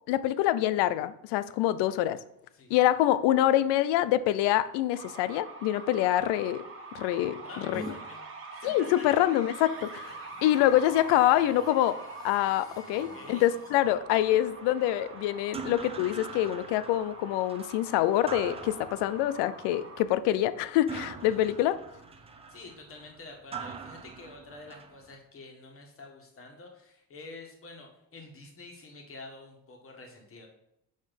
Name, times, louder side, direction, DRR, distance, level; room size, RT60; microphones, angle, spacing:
voice 1, 0.1-2.2 2.7-6.6 6.9-7.4 7.7-7.8 8.6-12.0 12.2-21.8, left 13 dB, 85° left, 15 dB, 0.6 m, -25 dB
voice 2, 2.5-2.8 7.4-9.2 10.3-10.4 13.0-13.4 14.3-14.4 21.2-21.4 22.5-30.5, left 3 dB, 35° left, 1 dB, 1.6 m, -48 dB
sound 1, 4.9-20.0, right 3 dB, 30° right, 1.2 m, -45 dB
sound 2, 7.7-7.9 9.3-13.7, right 1 dB, 10° left, 1.3 m, -48 dB
sound 3, 13.8-25.2, right 5 dB, 15° right, 0.5 m, -44 dB
6.4 x 5.2 x 5.3 m, 0.80 s
cardioid pair, 145°, 40 cm